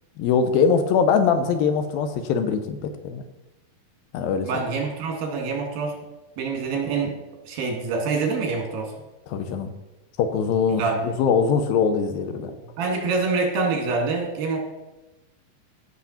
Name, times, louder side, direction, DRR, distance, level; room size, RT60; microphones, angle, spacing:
voice 1, 0.2-3.2 4.1-4.5 9.3-9.7 10.2-12.6, left 6 dB, 90° left, 8 dB, 2.6 m, -22 dB
voice 2, 4.4-5.9 6.4-7.1 7.5-8.9 10.7-11.1 12.8-14.6, right 4 dB, 80° right, 1 dB, 3.9 m, -25 dB
15.0 x 6.6 x 4.3 m, 1.1 s
omnidirectional pair, 4.1 m